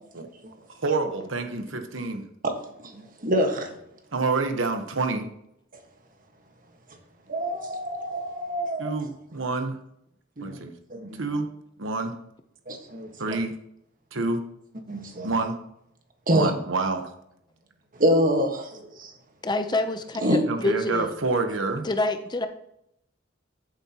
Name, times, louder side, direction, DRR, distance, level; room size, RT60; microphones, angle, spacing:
voice 1, 0.8-2.2 4.1-5.3 8.8-9.8 10.4-10.7 11.2-11.5 11.8-12.1 13.2-13.5 14.1-14.4 15.2-15.6 16.3-17.1 20.5-21.9, right 3 dB, 85° right, 6 dB, 1.1 m, -27 dB
voice 2, 2.4-3.8 7.3-8.9 10.4-10.6 10.9-11.3 12.7-13.4 14.9-15.3 16.3-16.5 18.0-18.6 20.2-20.4, equal, 45° right, 4 dB, 1.5 m, -26 dB
voice 3, 19.4-21.1 21.8-22.5, left 2 dB, 25° left, 8 dB, 0.7 m, -27 dB
14.0 x 7.8 x 3.0 m, 0.77 s
head